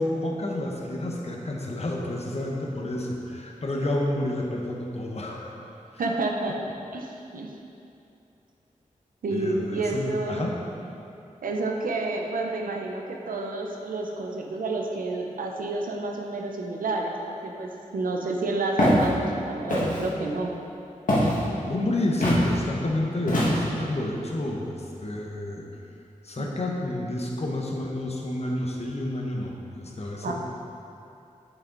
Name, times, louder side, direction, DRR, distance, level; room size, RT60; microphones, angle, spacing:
voice 1, 0.0-5.6 9.3-10.6 21.6-25.7 26.2-30.3, left 1 dB, 50° left, -1 dB, 1.1 m, -30 dB
voice 2, 6.0-6.6 6.9-7.5 9.2-10.4 11.4-20.5 26.4-26.5 30.2-30.3, right 2 dB, 90° right, 1 dB, 0.7 m, -29 dB
Walk footsteps, 18.8-19.0 19.7-20.1 21.1-21.4 22.2-22.4 23.3-23.8, equal, 70° left, 1.7 m, -22 dB
6.5 x 6.3 x 3.9 m, 2.7 s
cardioid pair, 50°, 14 cm